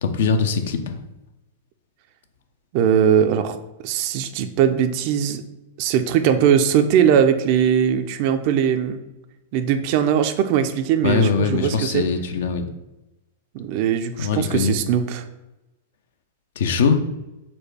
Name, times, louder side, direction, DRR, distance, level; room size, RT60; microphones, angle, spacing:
voice 1, 0.0-1.0 11.0-12.7 14.2-14.7 16.6-17.0, left 5 dB, 60° left, 7 dB, 0.4 m, -21 dB
voice 2, 2.7-3.6 3.8-5.4 5.8-9.0 9.5-12.1 13.5-15.2, right 8 dB, 45° right, 9 dB, 0.4 m, -20 dB
4.2 x 2.2 x 4.6 m, 1.0 s
figure-of-eight pair, 100°, 0 cm